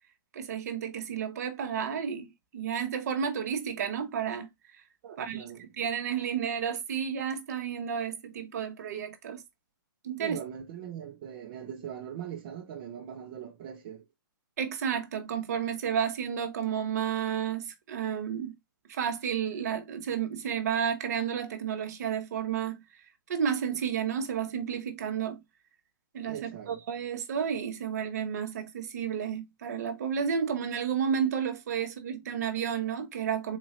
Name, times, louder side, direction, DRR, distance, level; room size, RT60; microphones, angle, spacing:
voice 1, 0.3-4.5 5.2-5.4 5.8-9.4 10.0-10.4 14.6-18.6 18.9-22.8 23.3-25.4 26.1-33.6, right 8 dB, 45° right, 0.9 m, -31 dB
voice 2, 5.0-5.7 10.2-14.1 26.3-26.8, right 9 dB, 25° right, 0.5 m, -41 dB
4.0 x 2.6 x 3.0 m
hypercardioid pair, 170°, 12 cm